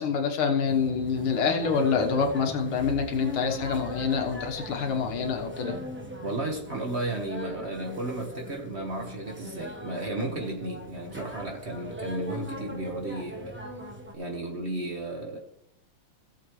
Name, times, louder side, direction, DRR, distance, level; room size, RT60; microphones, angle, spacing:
voice 1, 0.0-5.8, left 6 dB, 85° left, 2.1 m, -26 dB
sound 1, 0.6-14.1, equal, 10° right, 0.7 m, -39 dB
voice 2, 6.2-13.6 14.1-15.4, right 2 dB, 35° right, 1.5 m, -34 dB
17.5 x 7.2 x 3.2 m
omnidirectional pair, 2.2 m